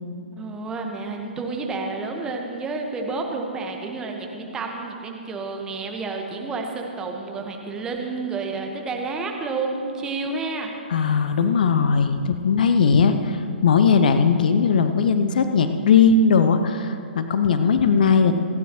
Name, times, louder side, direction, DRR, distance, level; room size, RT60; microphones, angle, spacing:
voice 1, 0.4-10.7, right 3 dB, 10° right, 2 dB, 1.3 m, -30 dB
voice 2, 10.9-18.3, left 5 dB, 50° left, 9 dB, 0.7 m, -19 dB
28.0 x 9.8 x 3.1 m, 2.5 s
figure-of-eight pair, 125°, 6 cm